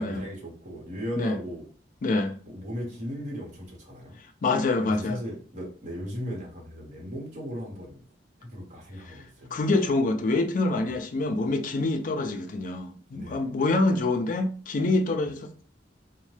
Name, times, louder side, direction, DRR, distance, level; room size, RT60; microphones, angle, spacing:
voice 1, 0.0-1.6 2.4-4.2 4.8-8.0 8.4-9.6 10.9-11.0 13.1-13.5, equal, 45° right, 1.0 m, -37 dB
voice 2, 2.0-2.4 4.4-5.2 9.5-15.6, left 2 dB, 45° left, 0.4 m, -26 dB
2.7 x 2.1 x 3.2 m
head